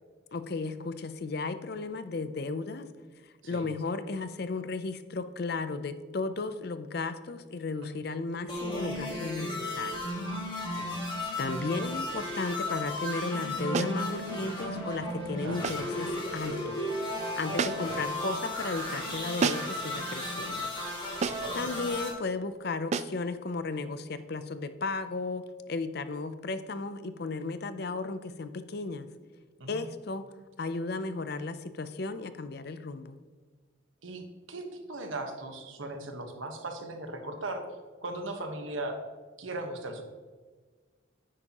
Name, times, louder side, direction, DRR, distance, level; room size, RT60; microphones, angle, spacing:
voice 1, 0.3-2.9 3.4-10.1 11.4-16.9 17.4-20.7 21.0-21.1 21.5-25.4 25.7-29.1 29.7-30.2 30.6-33.2, left 3 dB, 50° left, 11 dB, 0.5 m, -34 dB
sound 1, 8.5-22.1, left 1 dB, 25° left, 2.5 m, -34 dB
sound 2, 13.7-14.0 15.6-15.9 17.6-18.0 19.4-19.8 21.2-21.6 22.9-23.2, right 5 dB, 35° right, 0.3 m, -31 dB
voice 2, 15.4-15.7 17.5-18.0 21.3-21.7 29.6-29.8 34.0-37.6 38.0-39.0 39.4-40.0, right 2 dB, 85° right, 5 dB, 1.3 m, -38 dB
9.9 x 8.4 x 3.0 m, 1.4 s
head